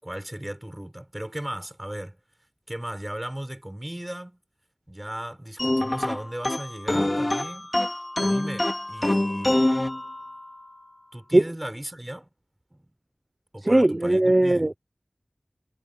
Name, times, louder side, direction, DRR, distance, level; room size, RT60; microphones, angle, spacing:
voice 1, 0.0-2.2 2.7-4.4 4.9-7.7 8.2-9.7 11.1-12.3 12.7-12.9 13.5-14.7, right 1 dB, 20° right, 6.5 m, -36 dB
sound 1, 5.6-10.7, left 1 dB, 40° left, 3.0 m, -26 dB
voice 2, 13.6-14.7, right 1 dB, 40° right, 0.6 m, -19 dB
wide cardioid pair, 40°, 0 cm